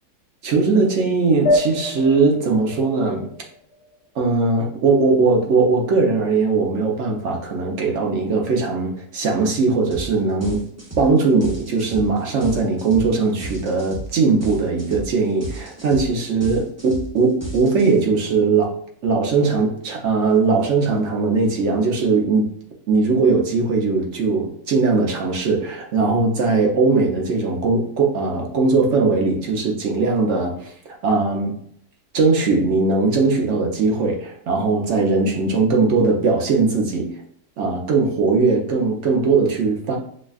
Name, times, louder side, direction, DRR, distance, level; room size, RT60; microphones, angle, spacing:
voice 1, 0.4-3.3 4.2-10.6 11.0-18.7 19.0-22.5 22.9-30.7 31.0-31.6 32.1-37.2 37.6-40.0, right 4 dB, 55° right, 1 dB, 1.0 m, -19 dB
sound 1, 1.5-4.4, left 1 dB, 85° left, 1.2 m, -26 dB
sound 2, 9.9-10.1 10.4-18.2, right 2 dB, 15° right, 0.6 m, -33 dB
6.3 x 2.3 x 2.4 m, 0.64 s
omnidirectional pair, 1.6 m